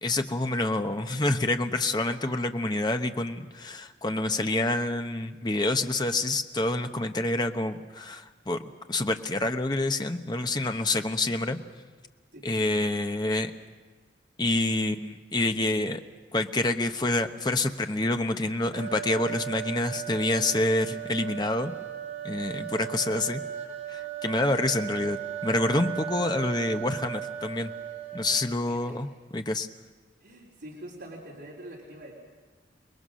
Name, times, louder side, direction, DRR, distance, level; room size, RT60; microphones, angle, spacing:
voice 1, 0.0-8.6 8.9-11.6 12.4-13.5 14.4-16.0 16.3-21.7 22.2-23.4 23.9-27.7 28.1-29.7, left 2 dB, 25° left, 7 dB, 1.0 m, -27 dB
sound 1, 18.7-28.7, right 10 dB, 50° right, 3.1 m, -37 dB
voice 2, 28.7-29.0 30.2-32.1, right 1 dB, 70° right, -4 dB, 3.9 m, -44 dB
29.0 x 20.0 x 6.4 m, 1.4 s
head